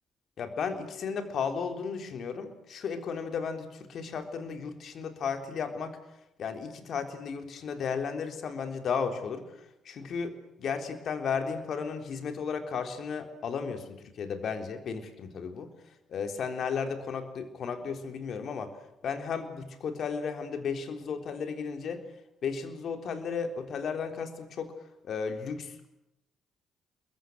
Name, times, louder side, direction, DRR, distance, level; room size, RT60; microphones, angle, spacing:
voice 1, 0.4-6.0 6.4-9.5 9.9-15.7 16.1-18.7 19.0-22.0 22.4-24.7 25.0-26.0, left 6 dB, 60° left, 6 dB, 3.6 m, -34 dB
28.0 x 22.0 x 7.9 m, 0.85 s
hypercardioid pair, 45°, 0 cm